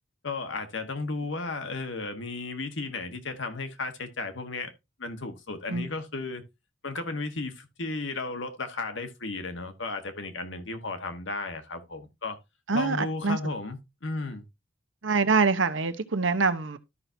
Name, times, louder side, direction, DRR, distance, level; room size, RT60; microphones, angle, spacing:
voice 1, 0.2-4.7 5.0-6.4 6.8-12.4 12.7-14.4, left 3 dB, 70° left, 1.4 m, -34 dB
voice 2, 12.7-13.4 15.0-16.8, right 4 dB, 75° right, 0.9 m, -25 dB
12.5 x 5.9 x 2.7 m
head